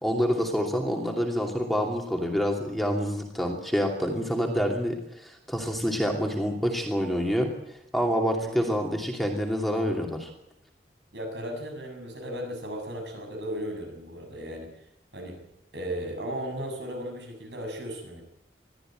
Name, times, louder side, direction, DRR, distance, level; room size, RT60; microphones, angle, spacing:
voice 1, 0.0-7.5 7.9-10.3, equal, ahead, 1 dB, 2.6 m, -27 dB
voice 2, 8.3-8.7 11.1-14.7 15.1-15.4 15.7-18.2, equal, 75° right, 3 dB, 7.2 m, -36 dB
22.0 x 14.0 x 9.0 m, 0.80 s
head